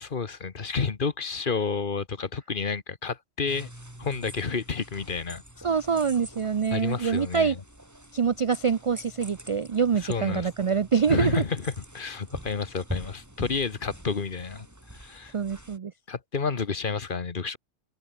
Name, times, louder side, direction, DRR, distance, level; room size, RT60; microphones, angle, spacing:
voice 1, 0.0-3.7 4.0-5.4 6.7-7.6 10.0-10.5 11.1-14.7 14.9-15.3 16.1-17.6, left 5 dB, 50° left, 1.4 m, -30 dB
sound 1, 3.5-15.8, right 1 dB, 15° right, 3.5 m, -45 dB
voice 2, 5.6-7.6 8.1-11.4 15.3-15.9, right 6 dB, 45° right, 0.4 m, -25 dB
omnidirectional pair, 1.1 m